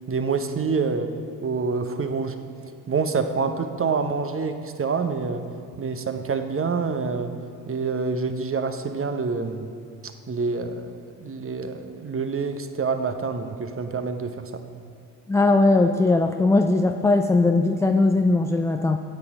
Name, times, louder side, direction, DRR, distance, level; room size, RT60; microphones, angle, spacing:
voice 1, 0.1-1.1 1.4-2.4 2.9-5.4 5.8-7.3 7.7-9.8 10.3-14.6, right 4 dB, 25° right, 8 dB, 0.9 m, -27 dB
voice 2, 15.3-19.0, left 2 dB, 5° left, 5 dB, 0.3 m, -19 dB
13.0 x 8.8 x 4.9 m, 2.5 s
figure-of-eight pair, 40°, 48 cm